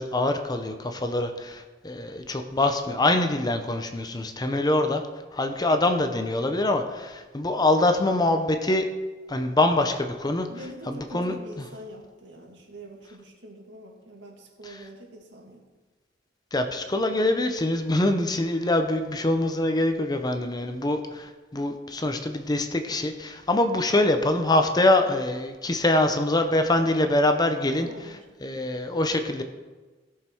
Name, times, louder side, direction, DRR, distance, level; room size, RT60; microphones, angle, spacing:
voice 1, 0.0-5.0 5.3-8.9 9.3-10.5 10.9-11.7 14.6-14.8 16.5-27.9 28.4-29.4, left 2 dB, 20° left, 6 dB, 0.7 m, -24 dB
voice 2, 10.5-15.7 27.8-28.2, right 1 dB, 70° right, 0 dB, 2.2 m, -44 dB
15.5 x 6.6 x 4.5 m, 1.3 s
head